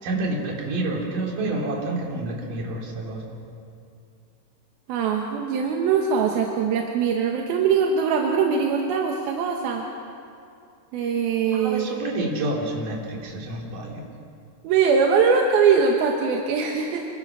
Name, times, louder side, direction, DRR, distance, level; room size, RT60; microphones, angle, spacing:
voice 1, 0.0-3.4 11.5-14.0, right 2 dB, 45° right, -1 dB, 4.4 m, -28 dB
voice 2, 4.9-9.8 10.9-11.9 14.6-17.1, right 6 dB, 65° right, 1 dB, 2.7 m, -22 dB
27.0 x 23.0 x 6.1 m, 2.4 s
omnidirectional pair, 5.5 m